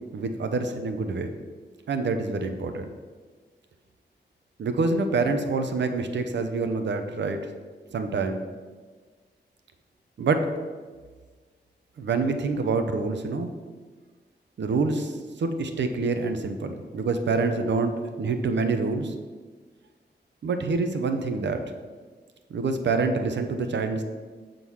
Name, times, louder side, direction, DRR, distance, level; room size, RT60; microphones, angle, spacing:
voice 1, 0.1-1.3 1.9-2.9 4.6-7.4 7.9-8.4 10.2-10.5 12.0-13.5 14.6-19.1 20.4-21.6 22.5-24.0, right 3 dB, 75° right, 7 dB, 0.7 m, -26 dB
6.9 x 3.9 x 6.2 m, 1.5 s
wide cardioid pair, 180°, 19 cm